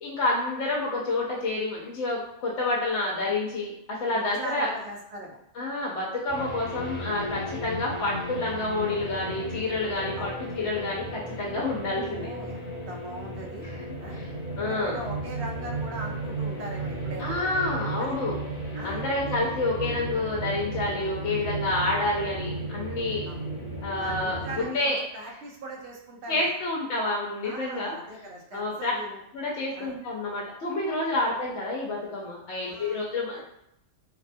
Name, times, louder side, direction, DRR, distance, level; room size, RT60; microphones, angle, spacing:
voice 1, 0.0-4.7 5.6-12.3 13.6-13.8 14.1-14.3 14.6-15.0 17.2-18.3 18.8-23.2 23.8-25.0 26.3-28.0 28.5-28.9 29.3-33.4, left 2 dB, 75° left, -3 dB, 0.9 m, -29 dB
voice 2, 4.1-5.4 10.2-10.3 12.1-13.7 14.0-14.2 14.7-17.3 18.0-18.2 18.7-19.3 23.2-23.4 24.0-26.5 27.4-29.2 29.7-30.0 32.6-33.0 33.4-33.5, right 1 dB, 65° right, -1 dB, 0.9 m, -40 dB
sound 1, 6.3-24.7, right 1 dB, 50° left, 0.8 m, -34 dB
2.6 x 2.1 x 2.5 m, 0.79 s
omnidirectional pair, 1.3 m